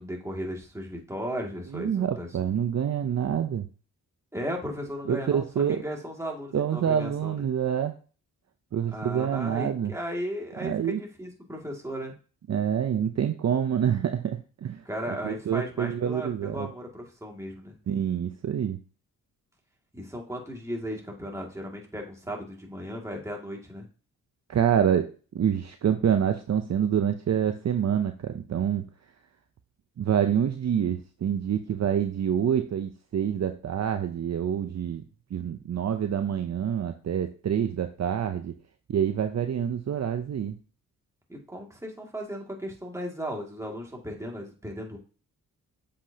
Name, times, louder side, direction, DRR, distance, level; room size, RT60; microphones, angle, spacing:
voice 1, 0.0-2.3 4.3-7.4 8.9-12.1 14.8-17.8 19.9-23.9 41.3-45.0, equal, 10° right, 0 dB, 2.3 m, -36 dB
voice 2, 1.7-3.7 5.1-5.8 6.5-7.9 8.7-9.9 10.6-11.0 12.5-16.7 17.9-18.8 24.5-25.1 25.3-28.8 30.0-35.0 35.3-38.5 38.9-40.6, right 8 dB, 50° right, 7 dB, 0.6 m, -27 dB
7.5 x 5.1 x 2.8 m, 0.37 s
cardioid pair, 70°, 36 cm